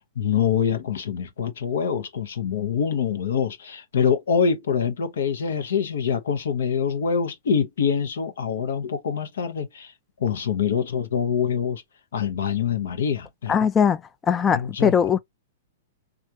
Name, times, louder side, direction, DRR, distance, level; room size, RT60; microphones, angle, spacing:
voice 1, 0.2-9.9 10.2-11.8 12.1-13.7 14.5-14.9, left 7 dB, 70° left, 0.8 m, -25 dB
voice 2, 13.5-14.0 14.3-15.2, left 7 dB, 20° left, 0.4 m, -20 dB
3.3 x 2.4 x 2.7 m
hypercardioid pair, 110°, 0 cm